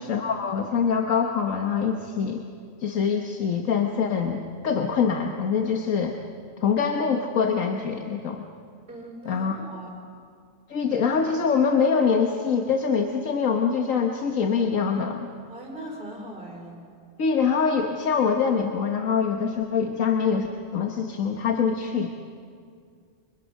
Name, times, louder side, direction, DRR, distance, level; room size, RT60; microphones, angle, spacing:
voice 1, 0.0-2.4 2.8-6.1 6.6-8.5 9.2-9.6 10.7-15.3 17.2-20.5 20.7-22.2, left 6 dB, 80° left, 3 dB, 1.7 m, -24 dB
voice 2, 8.9-10.0 15.5-16.8, right 1 dB, 40° right, 0 dB, 5.2 m, -40 dB
29.5 x 25.5 x 6.5 m, 2.3 s
omnidirectional pair, 1.4 m